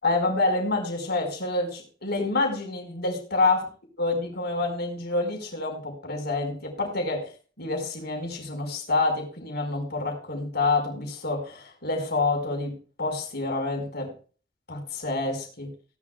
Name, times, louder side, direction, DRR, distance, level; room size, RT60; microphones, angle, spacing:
voice 1, 0.0-3.7 4.0-7.3 7.6-14.1 14.7-15.7, left 3 dB, 55° left, 3 dB, 4.8 m, -27 dB
18.0 x 11.5 x 2.3 m, 0.38 s
head